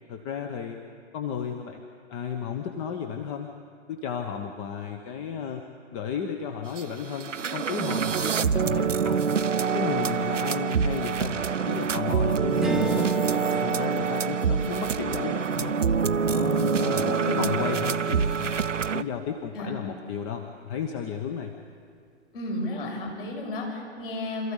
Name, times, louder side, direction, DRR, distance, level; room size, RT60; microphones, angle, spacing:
voice 1, 0.1-0.8 1.1-3.5 3.9-5.6 5.9-9.2 9.7-13.1 13.5-15.8 16.2-18.5 18.9-21.5, left 7 dB, 25° left, 5 dB, 1.1 m, -33 dB
sound 1, 6.8-6.9 7.1-19.0, right 6 dB, 80° right, 0.7 m, -26 dB
Strum, 12.6-17.2, right 1 dB, ahead, 1.0 m, -36 dB
voice 2, 16.8-17.5 19.5-19.7 22.3-24.5, left 1 dB, 50° left, -1 dB, 6.8 m, -33 dB
26.5 x 14.5 x 8.3 m, 2.2 s
figure-of-eight pair, 120°, 36 cm